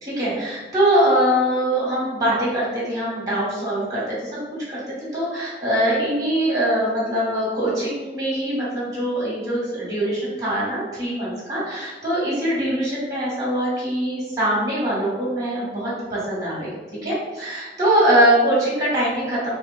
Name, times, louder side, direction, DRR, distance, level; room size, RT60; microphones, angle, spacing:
voice 1, 0.0-19.5, right 1 dB, 20° right, -8 dB, 1.3 m, -22 dB
3.2 x 3.0 x 2.4 m, 1.3 s
head